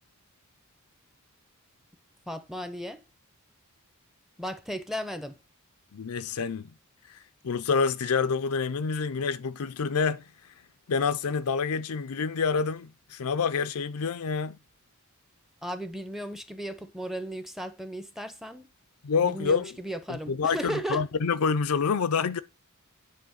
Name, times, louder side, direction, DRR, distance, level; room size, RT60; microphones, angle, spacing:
voice 1, 2.3-3.0 4.4-5.4 15.6-18.7 19.2-21.0, equal, ahead, 0.7 m, -35 dB
voice 2, 5.9-6.7 7.1-10.3 10.9-14.6 19.0-19.7 20.1-22.4, left 5 dB, 70° left, 0.5 m, -27 dB
9.4 x 3.5 x 6.3 m
head